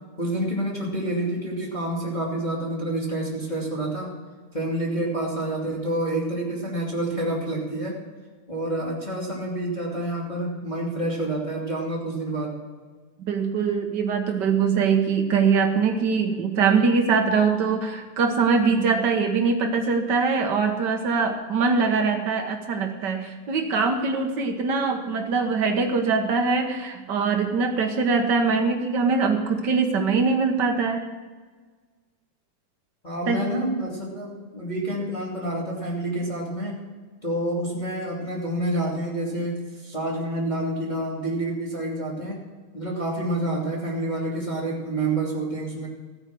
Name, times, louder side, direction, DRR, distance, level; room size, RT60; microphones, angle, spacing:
voice 1, 0.2-4.1 4.5-8.0 8.5-12.6 33.0-36.8 37.2-42.4 42.7-45.9, right 1 dB, 15° left, -5 dB, 2.6 m, -28 dB
voice 2, 13.2-31.0 33.3-33.4, right 5 dB, 85° right, 3 dB, 0.9 m, -22 dB
15.5 x 9.3 x 6.2 m, 1.4 s
omnidirectional pair, 3.7 m